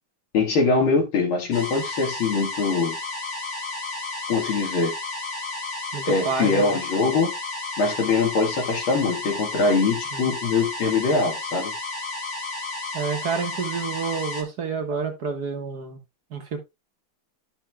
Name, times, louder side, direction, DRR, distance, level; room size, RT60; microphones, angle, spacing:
voice 1, 0.3-3.0 4.3-4.9 6.1-7.3 7.8-11.7, left 4 dB, 75° left, 2.6 m, -22 dB
sound 1, 1.5-14.4, left 3 dB, 60° left, 2.7 m, -32 dB
voice 2, 5.9-6.8 10.1-10.3 12.9-16.0 16.3-16.6, right 5 dB, 55° right, 1.6 m, -29 dB
12.0 x 5.7 x 2.3 m
omnidirectional pair, 2.3 m